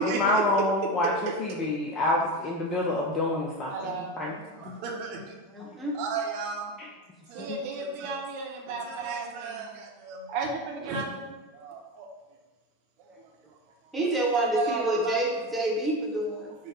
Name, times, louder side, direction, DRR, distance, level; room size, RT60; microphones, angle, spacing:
voice 1, 0.0-4.3 4.7-4.8 6.8-6.9 7.4-7.6, left 1 dB, 25° left, -2 dB, 0.4 m, -27 dB
voice 2, 3.7-4.4 4.8-5.2 5.9-6.6 7.3-11.3 11.6-12.1 14.2-15.5, right 5 dB, 45° right, 0 dB, 0.7 m, -33 dB
voice 3, 5.5-5.9 13.9-16.5, right 1 dB, 10° right, -2 dB, 0.9 m, -28 dB
4.7 x 2.1 x 4.0 m, 1.2 s
figure-of-eight pair, 90°, 0 cm